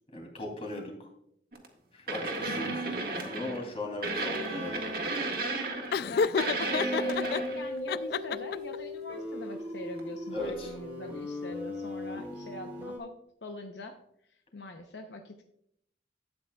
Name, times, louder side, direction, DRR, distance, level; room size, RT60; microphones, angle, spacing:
voice 1, 0.1-0.9 1.9-4.9 6.0-6.1 10.3-10.7, left 1 dB, 35° left, 0 dB, 2.8 m, -38 dB
sound 1, 1.5-1.7 2.1-3.6 4.0-6.1 6.4-7.7 10.0-10.1, right 3 dB, 55° right, 1.5 m, -33 dB
voice 2, 2.5-2.9 6.0-14.0 14.5-15.5, left 1 dB, 80° left, 5 dB, 0.7 m, -43 dB
Laughter, 5.9-7.4 7.9-8.8, left 5 dB, 60° left, 0.3 m, -29 dB
sound 2, 6.7-13.0, left 1 dB, 10° right, 2.4 m, -38 dB
12.5 x 8.9 x 2.3 m, 0.72 s
head